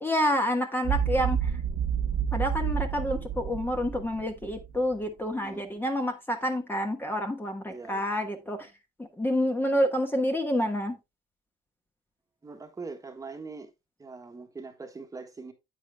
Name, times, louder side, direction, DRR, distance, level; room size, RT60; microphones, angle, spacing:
voice 1, 0.0-1.5 2.3-8.7 9.0-11.0, equal, 10° left, 1.3 m, -28 dB
sound 1, 0.8-4.8, right 8 dB, 60° right, 1.1 m, -29 dB
voice 2, 7.7-8.0 12.4-13.7 14.0-15.5, right 4 dB, 20° right, 1.4 m, -42 dB
9.4 x 8.3 x 2.2 m
cardioid pair, 110°, 17 cm